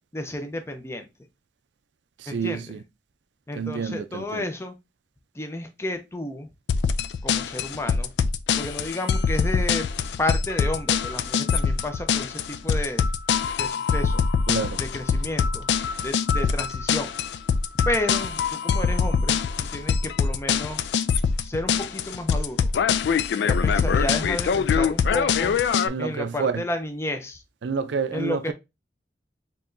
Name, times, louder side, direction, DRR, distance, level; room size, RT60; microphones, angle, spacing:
voice 1, 0.1-1.1 2.3-2.6 3.5-4.7 5.4-6.5 7.2-8.1 8.6-9.9 10.2-13.0 13.6-14.2 14.9-15.7 16.0-17.1 17.9-19.4 19.7-20.8 21.4-22.7 23.4-25.5 26.0-27.4 28.1-28.5, left 1 dB, 15° left, 0.5 m, -31 dB
voice 2, 2.2-2.8 3.5-4.5 14.5-14.8 25.8-26.6 27.6-28.5, right 5 dB, 90° right, 0.5 m, -29 dB
sound 1, 6.7-25.9, left 6 dB, 75° left, 0.3 m, -23 dB
4.4 x 3.0 x 2.5 m
head